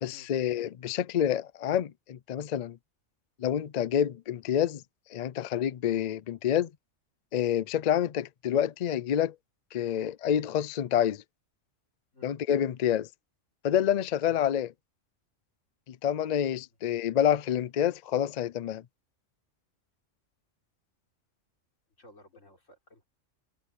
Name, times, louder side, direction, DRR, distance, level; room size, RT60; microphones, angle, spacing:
voice 1, 0.0-2.8 3.4-4.8 5.1-6.7 7.3-9.3 9.7-11.2 12.2-13.1 13.6-14.7 15.9-18.8, left 10 dB, 60° left, 0.4 m, -28 dB
voice 2, 22.0-23.1, left 1 dB, 75° left, 5.2 m, -56 dB
omnidirectional pair, 1.3 m